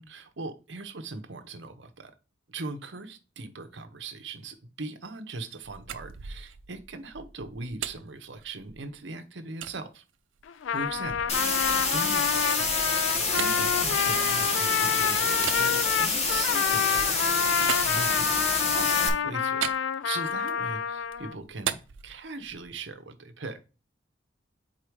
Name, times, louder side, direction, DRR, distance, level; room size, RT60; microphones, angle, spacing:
voice 1, 0.0-2.1 2.5-10.0 10.7-12.9 13.3-17.2 17.9-19.7 20.0-23.6, right 3 dB, 65° right, 8 dB, 0.9 m, -40 dB
sound 1, 5.6-9.0 9.6-9.8 10.4-14.8 15.4-18.6 19.6-20.7 21.0-22.8, right 9 dB, 90° right, 0.5 m, -39 dB
Trumpet, 10.5-21.3, left 8 dB, 80° left, 0.4 m, -28 dB
sound 2, 11.3-19.1, left 3 dB, 35° left, 1.0 m, -27 dB
4.9 x 4.2 x 4.7 m, 0.31 s
head